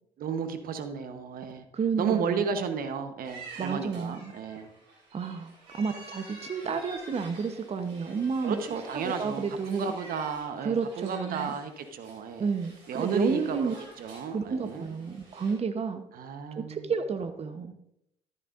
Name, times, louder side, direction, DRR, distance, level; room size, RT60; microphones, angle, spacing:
voice 1, 0.2-1.6 2.0-4.7 8.4-12.5 12.9-14.9 16.1-16.9, right 6 dB, 60° right, 9 dB, 1.1 m, -33 dB
voice 2, 1.7-2.4 3.6-4.3 5.1-8.6 9.0-9.9 10.6-11.5 12.4-13.7 14.3-16.0 16.5-17.7, right 5 dB, 35° right, 9 dB, 1.0 m, -31 dB
sound 1, 3.2-15.5, right 2 dB, 80° right, 4.2 m, -49 dB
13.5 x 11.0 x 2.6 m, 0.78 s
hypercardioid pair, 55°, 17 cm